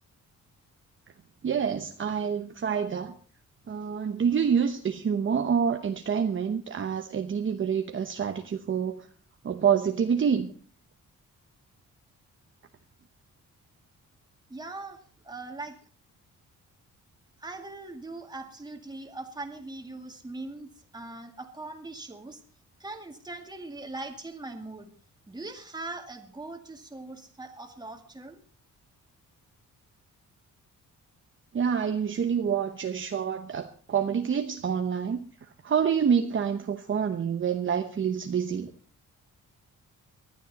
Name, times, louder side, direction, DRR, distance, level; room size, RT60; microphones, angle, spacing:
voice 1, 1.4-3.1 3.7-9.1 9.4-10.5 31.5-35.3 35.6-38.7, right 7 dB, 40° right, 1.0 m, -27 dB
voice 2, 14.5-15.0 15.2-15.8 17.4-22.4 22.8-24.9 25.3-28.4, right 2 dB, 15° right, 2.2 m, -41 dB
19.5 x 12.0 x 4.2 m
wide cardioid pair, 145°, 32 cm